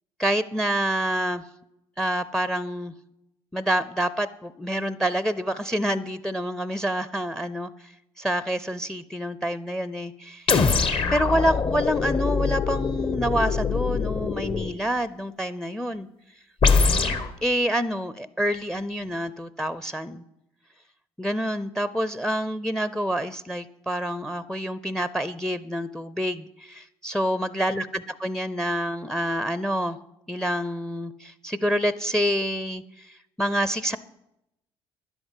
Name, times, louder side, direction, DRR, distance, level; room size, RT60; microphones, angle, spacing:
voice 1, 0.2-1.4 2.0-2.9 3.5-7.7 8.2-10.5 11.1-16.1 17.4-20.2 21.2-30.0 30.3-34.0, equal, 5° left, 17 dB, 0.6 m, -27 dB
sound 1, 10.5-14.8 16.6-17.3, left 4 dB, 45° left, 1.3 m, -23 dB
11.0 x 8.0 x 7.5 m, 0.85 s
hypercardioid pair, 55°, 13 cm